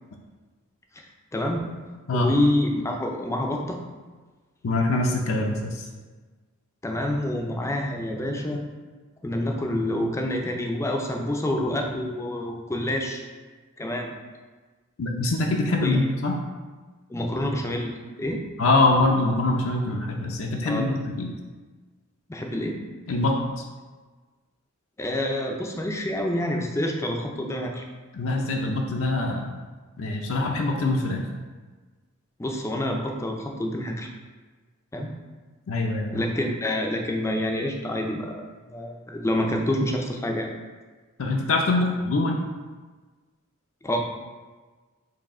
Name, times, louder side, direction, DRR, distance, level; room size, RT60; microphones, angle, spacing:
voice 1, 1.0-1.8 2.1-3.8 6.8-8.6 9.2-13.2 13.8-14.1 15.8-16.1 17.1-17.9 18.2-18.4 20.6-20.9 22.3-22.8 25.0-27.8 32.4-34.1 34.9-35.1 36.1-40.5 43.8-44.0, left 1 dB, 15° left, 1 dB, 0.4 m, -27 dB
voice 2, 4.6-5.9 15.0-16.4 18.6-21.3 23.1-23.4 28.1-29.5 30.0-31.3 35.7-36.3 41.2-42.4, left 2 dB, 65° left, 1 dB, 0.5 m, -24 dB
4.7 x 2.7 x 4.2 m, 1.3 s
head